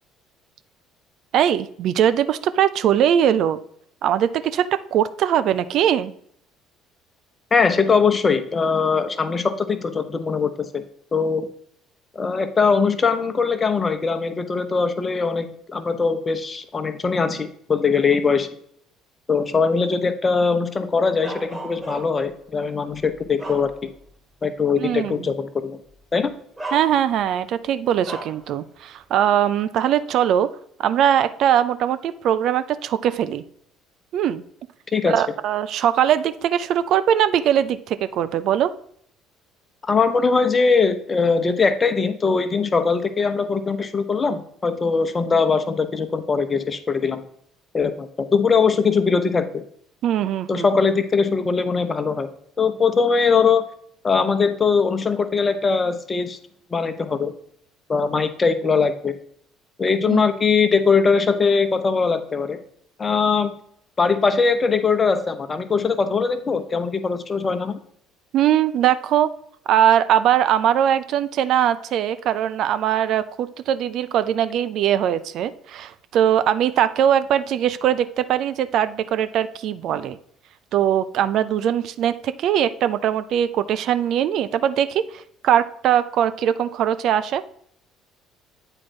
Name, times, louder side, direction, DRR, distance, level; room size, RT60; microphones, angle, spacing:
voice 1, 1.3-3.6 4.0-6.1 24.7-25.3 26.7-30.5 30.8-33.4 34.1-34.4 35.1-38.7 50.0-50.7 60.1-60.2 68.3-69.3 69.7-80.2 80.7-87.4, right 10 dB, 55° right, 13 dB, 0.4 m, -21 dB
voice 2, 7.5-10.8 11.1-11.5 12.1-18.5 19.3-23.9 24.4-25.8 26.1-26.3 34.9-35.2 39.8-47.2 47.7-49.6 50.5-52.3 52.6-53.6 54.0-56.4 56.7-57.3 57.9-59.1 59.8-62.6 63.0-63.5 64.0-67.8, left 5 dB, 30° left, 10 dB, 0.9 m, -21 dB
Bark, 21.2-22.3 22.9-24.1 24.6-24.7 25.9-26.0 26.6-27.3 28.0-28.5, right 2 dB, 15° right, 2.2 m, -35 dB
8.8 x 4.5 x 4.2 m, 0.65 s
figure-of-eight pair, 55°, 0 cm